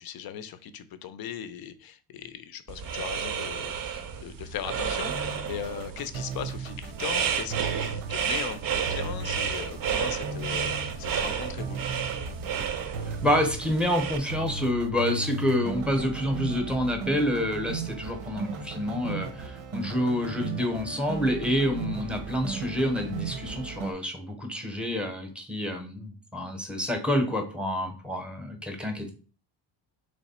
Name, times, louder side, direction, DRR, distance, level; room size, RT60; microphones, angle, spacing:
voice 1, 0.0-11.9, left 9 dB, 50° left, 13 dB, 0.5 m, -39 dB
sound 1, 2.7-14.2, right 7 dB, 45° right, 0.6 m, -31 dB
sound 2, 5.1-23.9, right 4 dB, 85° right, 0.9 m, -36 dB
voice 2, 13.1-29.1, left 1 dB, ahead, 4 dB, 0.8 m, -28 dB
3.2 x 3.1 x 4.2 m, 0.38 s
cardioid pair, 115°, 49 cm